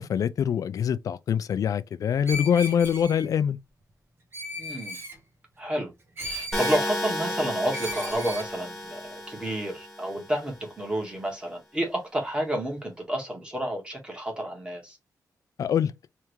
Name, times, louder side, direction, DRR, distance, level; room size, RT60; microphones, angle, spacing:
voice 1, 0.0-3.6 15.6-15.9, left 8 dB, 60° left, 0.4 m, -24 dB
Screech, 2.2-3.3 4.3-5.2 6.2-6.8 7.7-8.5, equal, 35° right, 1.2 m, -36 dB
voice 2, 4.6-5.0 5.6-5.9 6.2-15.0, right 1 dB, 15° right, 1.6 m, -30 dB
sound 1, 6.5-10.5, left 1 dB, 5° left, 1.5 m, -33 dB
3.6 x 3.3 x 3.1 m
wide cardioid pair, 145°, 7 cm